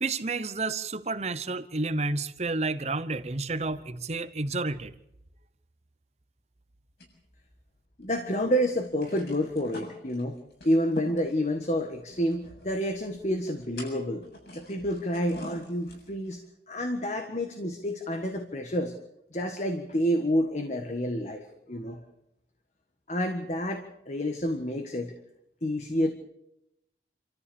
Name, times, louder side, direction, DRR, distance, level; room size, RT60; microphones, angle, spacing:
voice 1, 0.0-4.9, right 3 dB, 40° right, 13 dB, 0.9 m, -30 dB
sound 1, 7.0-8.2 8.5-8.6 8.8-16.3, left 1 dB, 65° left, 7.6 m, -46 dB
voice 2, 8.0-10.4 10.6-14.2 14.5-18.9 19.3-22.0 23.1-25.1 25.6-26.1, equal, 40° left, 5 dB, 1.5 m, -29 dB
28.0 x 14.0 x 7.0 m, 0.85 s
head